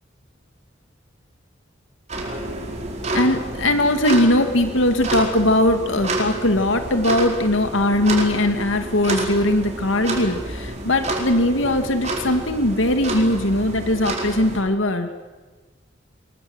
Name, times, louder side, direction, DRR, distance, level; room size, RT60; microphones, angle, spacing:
sound 1, 2.1-14.6, right 2 dB, 35° right, 4.7 m, -29 dB
voice 1, 3.1-15.1, left 1 dB, 85° left, 7 dB, 2.1 m, -20 dB
24.5 x 22.0 x 7.8 m, 1.2 s
head